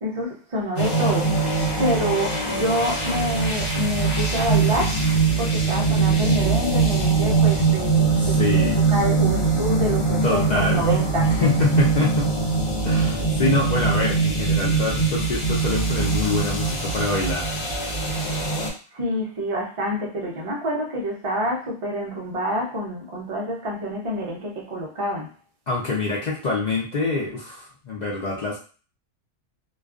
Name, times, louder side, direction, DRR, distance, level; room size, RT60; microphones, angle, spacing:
voice 1, 0.0-5.1 5.4-11.5 18.9-25.3, equal, 60° right, -1 dB, 0.3 m, -27 dB
sound 1, 0.8-18.7, right 4 dB, 50° left, 0.8 m, -22 dB
voice 2, 8.2-8.8 10.2-10.8 11.4-12.3 12.8-17.5 25.7-28.6, left 3 dB, 80° left, -4 dB, 0.4 m, -25 dB
2.3 x 2.3 x 2.4 m, 0.39 s
omnidirectional pair, 1.4 m